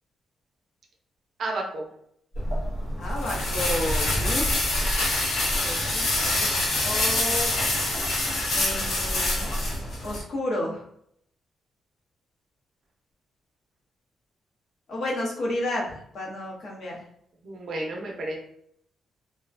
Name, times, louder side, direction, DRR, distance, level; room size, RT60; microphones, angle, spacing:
voice 1, 1.4-1.9 17.4-18.4, right 2 dB, 50° right, 0 dB, 0.5 m, -31 dB
sound 1, 2.4-10.2, left 1 dB, 90° left, 0.8 m, -25 dB
voice 2, 3.0-4.6 5.6-7.5 8.5-9.5 10.0-10.8 14.9-17.0, left 1 dB, 50° left, -3 dB, 0.7 m, -32 dB
2.4 x 2.1 x 2.5 m, 0.69 s
wide cardioid pair, 180°, 0 cm